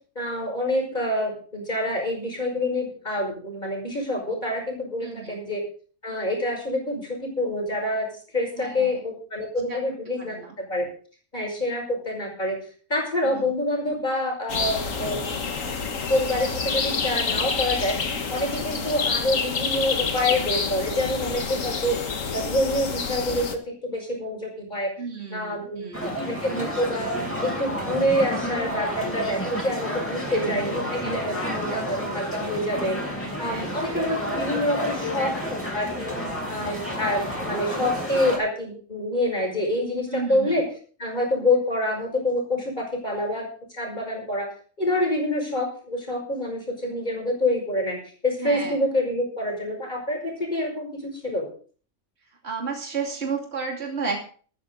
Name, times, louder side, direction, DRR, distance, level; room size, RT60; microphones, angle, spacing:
voice 1, 0.2-5.6 6.0-10.9 11.3-12.6 12.9-15.2 16.1-22.0 22.3-24.9 25.3-27.1 27.4-33.0 33.4-36.2 36.5-40.6 41.0-43.5 43.7-44.5 44.8-48.0 48.2-51.5, left 1 dB, 35° left, 1 dB, 5.9 m, -27 dB
voice 2, 5.0-5.4 8.6-9.1 9.7-9.8 10.2-10.5 13.2-13.5 18.6-18.8 25.0-26.2 30.2-30.8 33.4-33.8 40.1-40.6 48.4-48.8 52.4-54.3, right 5 dB, 55° right, 1 dB, 3.0 m, -33 dB
sound 1, 14.5-23.6, left 5 dB, 90° left, 1.9 m, -28 dB
sound 2, 25.9-38.4, equal, 10° left, 5.6 m, -30 dB
14.0 x 13.5 x 4.0 m, 0.42 s
omnidirectional pair, 1.3 m